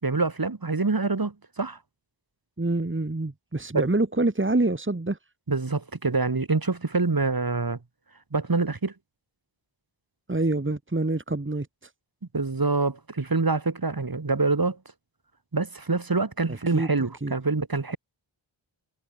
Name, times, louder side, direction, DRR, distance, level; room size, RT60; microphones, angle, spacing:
voice 1, 0.0-1.8 3.7-3.8 5.5-7.8 8.3-8.9 12.3-14.8 15.5-18.0, right 3 dB, 45° right, 4.0 m, -26 dB
voice 2, 2.6-5.2 10.3-11.9 16.5-16.9 17.2-17.3, right 2 dB, 25° right, 2.7 m, -26 dB
wide cardioid pair, 65°, 50 cm